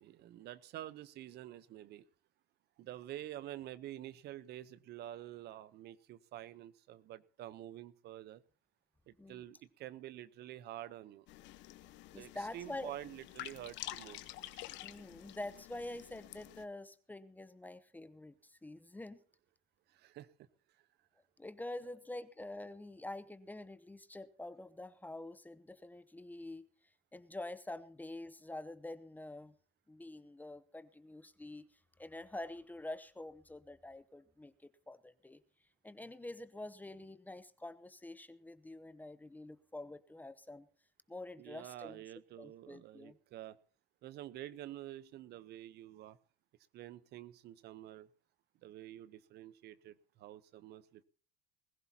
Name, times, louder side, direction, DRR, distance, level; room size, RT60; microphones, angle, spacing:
voice 1, 0.0-2.0 2.8-8.4 9.1-11.3 12.2-14.3 19.9-20.5 20.8-20.9 41.4-43.6 44.0-46.2 46.7-48.1 48.6-51.0, right 13 dB, 55° right, 17 dB, 0.8 m, -48 dB
sound 1, 11.3-16.6, left 15 dB, 60° left, 1.1 m, -49 dB
voice 2, 12.1-12.9 14.8-19.2 21.4-26.7 27.1-29.5 29.9-31.7 32.0-35.4 35.8-40.7 41.1-42.0 42.4-43.2, left 2 dB, 10° left, 14 dB, 0.8 m, -47 dB
21.0 x 15.0 x 2.8 m, 0.40 s
cardioid pair, 120°, 21 cm